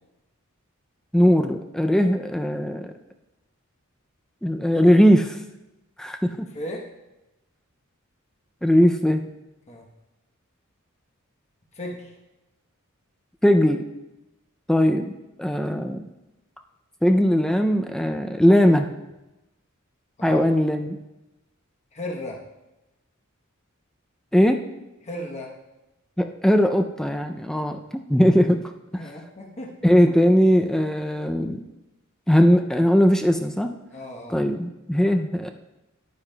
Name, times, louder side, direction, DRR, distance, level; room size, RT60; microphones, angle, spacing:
voice 1, 1.1-2.9 4.4-5.4 6.0-6.5 8.6-9.2 13.4-13.8 14.7-15.1 15.4-16.1 17.0-18.9 20.2-21.0 24.3-24.6 26.2-28.6 29.8-31.6 32.3-33.7 34.3-35.5, equal, 5° left, 6 dB, 0.3 m, -19 dB
voice 2, 6.5-6.9 9.7-9.9 11.7-12.1 20.2-20.4 21.9-22.4 25.0-25.5 28.9-29.8 33.9-34.4, left 1 dB, 30° left, -1 dB, 0.9 m, -35 dB
10.5 x 9.4 x 2.2 m, 0.98 s
head